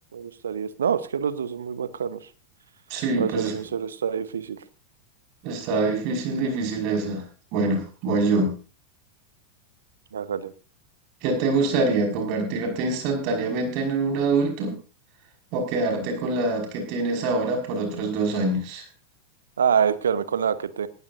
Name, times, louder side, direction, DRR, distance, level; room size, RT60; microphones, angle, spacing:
voice 1, 0.1-2.3 3.2-4.6 10.1-10.5 19.6-20.9, right 7 dB, 65° right, 15 dB, 1.1 m, -26 dB
voice 2, 2.9-3.5 5.4-7.2 7.5-8.5 11.2-14.7 15.5-18.8, right 3 dB, 45° right, 3 dB, 5.6 m, -25 dB
19.0 x 15.0 x 2.7 m, 0.34 s
figure-of-eight pair, 90°, 0 cm